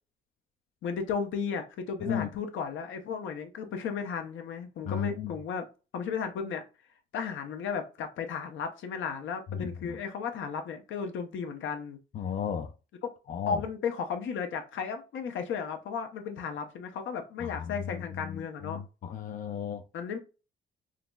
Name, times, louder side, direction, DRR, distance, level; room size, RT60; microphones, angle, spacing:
voice 1, 0.8-5.7 5.9-6.6 7.1-12.0 13.5-18.8 19.9-20.2, left 6 dB, 75° left, 0.7 m, -34 dB
voice 2, 4.8-5.3 9.5-10.0 12.1-12.7 13.3-13.6 17.4-19.8, left 8 dB, 40° left, 0.4 m, -35 dB
3.8 x 3.0 x 2.2 m
cardioid pair, 90°, 20 cm